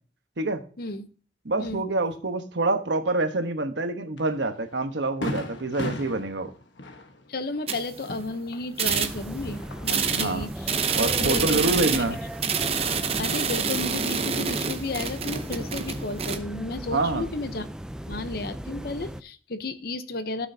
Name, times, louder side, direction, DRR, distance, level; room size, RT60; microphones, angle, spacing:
voice 1, 1.4-6.5 10.1-10.5 11.0-12.2 16.9-17.3, right 2 dB, 80° right, 8 dB, 1.1 m, -26 dB
Fireworks, 4.2-4.3 4.7-4.8 5.2-9.0 9.3-10.2, left 1 dB, 85° left, 1.2 m, -36 dB
voice 2, 7.3-10.7 11.2-12.0 13.2-17.7 18.0-20.5, left 2 dB, 55° left, 11 dB, 0.8 m, -33 dB
sound 1, 7.7-8.3 8.7-9.5 9.8-16.4, right 6 dB, 35° right, 0.8 m, -27 dB
sound 2, 8.8-19.2, equal, 5° right, 0.3 m, -37 dB
15.0 x 6.3 x 2.7 m, 0.39 s
head